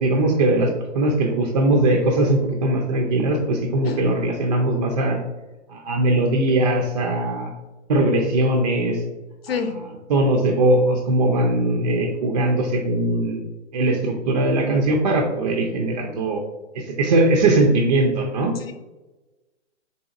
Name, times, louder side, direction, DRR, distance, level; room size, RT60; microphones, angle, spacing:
voice 1, 0.0-0.7 0.9-5.2 5.7-7.5 7.9-9.0 9.5-9.6 10.1-13.4 13.7-16.4 16.7-18.5, right 2 dB, 35° right, 1 dB, 0.5 m, -20 dB
voice 2, 9.4-9.7 18.6-18.7, left 6 dB, 55° left, 7 dB, 0.7 m, -27 dB
4.1 x 3.6 x 2.4 m, 1.1 s
hypercardioid pair, 130°, 36 cm